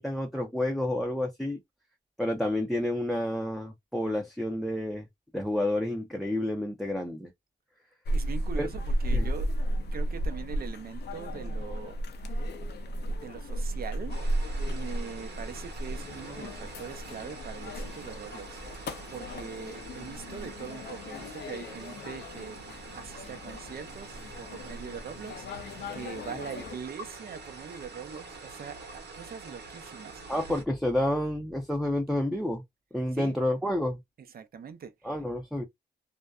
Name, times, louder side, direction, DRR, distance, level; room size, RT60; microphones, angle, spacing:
voice 1, 0.0-1.6 2.2-5.1 5.3-7.3 8.6-8.7 9.1-9.3 30.3-32.6 32.9-34.0 35.0-35.6, left 1 dB, ahead, 0.6 m, -29 dB
sound 1, 8.1-26.8, equal, 75° left, 0.5 m, -34 dB
voice 2, 8.1-9.5 9.9-12.5 13.0-14.2 14.7-22.6 22.9-30.2 33.1-33.4 34.2-35.2, right 7 dB, 60° right, 0.6 m, -42 dB
sound 2, 14.1-30.6, right 3 dB, 75° right, 1.0 m, -45 dB
2.6 x 2.1 x 2.2 m
cardioid pair, 75°, 18 cm